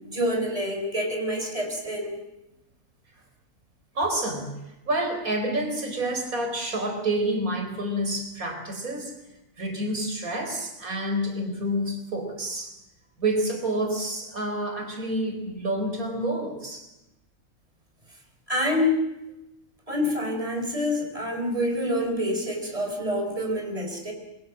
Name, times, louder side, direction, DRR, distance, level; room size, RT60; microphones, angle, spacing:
voice 1, 0.0-2.2 18.5-19.0 19.9-24.1, left 1 dB, 25° right, 3 dB, 5.0 m, -27 dB
voice 2, 3.9-4.5 4.9-9.2 9.6-12.7 13.2-16.9, right 1 dB, 80° right, 4 dB, 4.8 m, -28 dB
27.0 x 22.5 x 7.6 m, 0.94 s
omnidirectional pair, 1.5 m